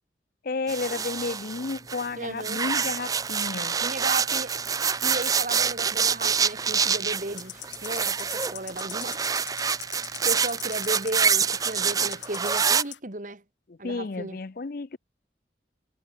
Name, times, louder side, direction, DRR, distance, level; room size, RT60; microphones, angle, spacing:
voice 1, 0.4-3.8 13.7-15.0, left 3 dB, 50° left, 0.5 m, -32 dB
sound 1, 0.7-2.1 2.4-12.8, right 6 dB, 20° right, 0.4 m, -26 dB
voice 2, 2.1-2.6 3.8-4.6 5.0-9.2 10.2-13.4 13.8-14.4, right 2 dB, 45° right, 1.9 m, -35 dB
sound 2, 7.4-13.0, left 14 dB, 85° left, 1.5 m, -42 dB
head